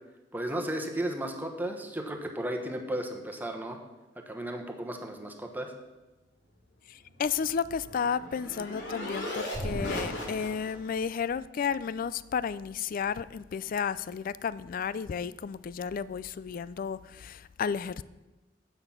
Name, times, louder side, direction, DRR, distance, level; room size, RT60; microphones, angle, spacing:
voice 1, 0.3-3.8 4.2-5.7, right 1 dB, 10° right, 3 dB, 1.2 m, -34 dB
voice 2, 7.2-18.0, left 6 dB, 50° left, 17 dB, 0.3 m, -32 dB
sound 1, 7.3-10.9, left 1 dB, 70° left, 2.9 m, -36 dB
9.2 x 7.8 x 5.7 m, 1.1 s
head